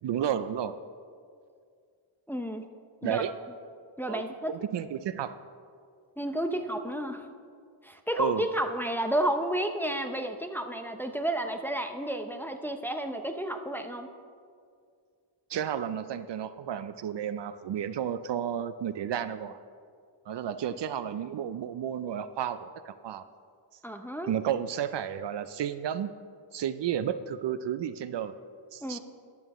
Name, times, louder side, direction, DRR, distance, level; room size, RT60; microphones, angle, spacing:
voice 1, 0.0-0.8 3.0-3.3 4.1-5.4 8.2-8.5 15.5-19.6 20.3-23.3 24.3-26.1 26.5-28.3 28.7-29.0, right 9 dB, 60° right, 12 dB, 0.5 m, -32 dB
voice 2, 2.3-2.7 3.0-3.2 4.0-4.5 6.2-7.3 7.8-14.1 23.8-24.3 28.8-29.0, right 1 dB, 5° left, 5 dB, 0.6 m, -31 dB
15.5 x 11.0 x 3.0 m, 2.2 s
cardioid pair, 95°, 49 cm